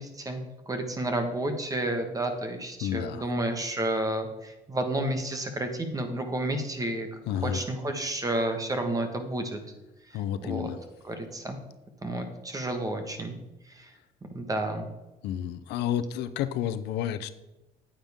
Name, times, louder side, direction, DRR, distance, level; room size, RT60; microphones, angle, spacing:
voice 1, 0.0-7.1 7.4-9.6 10.1-10.7 11.0-11.6 12.0-13.4 13.7-13.9 14.3-14.9, right 1 dB, 20° right, 6 dB, 1.5 m, -31 dB
voice 2, 2.8-3.2 7.3-7.6 10.1-10.8 15.2-17.3, left 10 dB, 85° left, 12 dB, 0.6 m, -30 dB
9.3 x 8.9 x 3.6 m, 0.97 s
cardioid pair, 110°, 17 cm